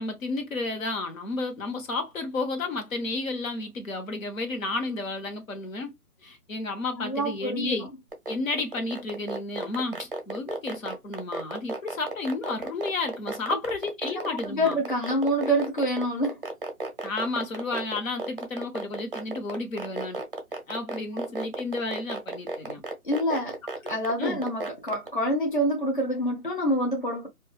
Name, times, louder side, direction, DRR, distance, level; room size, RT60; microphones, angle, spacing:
voice 1, 0.0-5.9 6.2-7.9 8.3-14.8 17.0-20.2 20.7-22.8 23.8-23.9 24.2-24.4, left 3 dB, 60° left, 0.9 m, -32 dB
voice 2, 7.0-7.9 14.1-16.4 23.0-23.6 23.9-27.3, equal, 35° left, 0.5 m, -27 dB
sound 1, 8.1-25.1, right 3 dB, 35° right, 0.6 m, -33 dB
2.5 x 2.3 x 3.0 m
hypercardioid pair, 165°, 46 cm